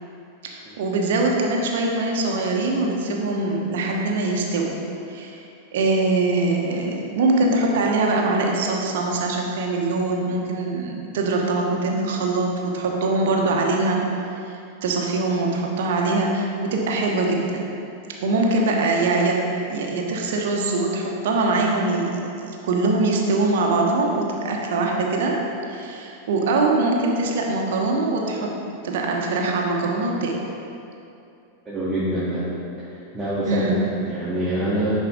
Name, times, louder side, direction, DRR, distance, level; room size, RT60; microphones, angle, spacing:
voice 1, 0.4-4.8 5.1-5.4 5.7-14.1 14.4-14.5 14.8-17.6 18.2-22.2 22.6-25.4 25.7-28.5 28.8-30.5 33.5-33.9, right 2 dB, 55° right, 0 dB, 1.0 m, -23 dB
voice 2, 31.6-32.5 32.8-32.9 33.1-34.9, right 1 dB, 15° right, -10 dB, 1.6 m, -25 dB
9.9 x 4.6 x 3.9 m, 2.6 s
figure-of-eight pair, 90°, 0 cm